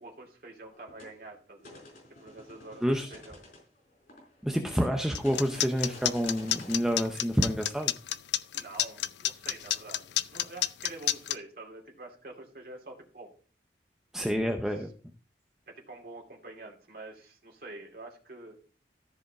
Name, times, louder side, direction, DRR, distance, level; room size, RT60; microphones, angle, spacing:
voice 1, 0.0-1.8 2.1-2.8 3.1-3.4 8.5-13.3 14.4-14.9 15.7-18.5, right 2 dB, 55° right, 0 dB, 2.5 m, -47 dB
sound 1, 0.7-1.1 1.6-4.6 5.2-6.8, left 1 dB, 50° left, 4.2 m, -50 dB
voice 2, 2.8-3.1 4.4-7.9 14.1-14.9, equal, 5° right, 3 dB, 0.7 m, -28 dB
sound 2, 5.1-11.4, left 13 dB, 80° left, 0.5 m, -29 dB
13.5 x 5.0 x 4.8 m, 0.40 s
head